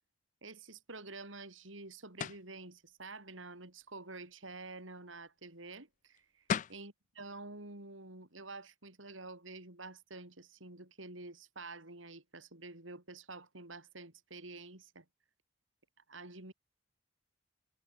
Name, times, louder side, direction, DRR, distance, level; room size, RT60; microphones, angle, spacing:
voice 1, 0.4-6.4 6.7-15.1 16.1-16.5, right 3 dB, 90° right, 5.4 m, -49 dB
sound 1, 2.2-2.5 6.2-6.3 6.5-6.9, left 7 dB, 40° left, 0.4 m, -35 dB
head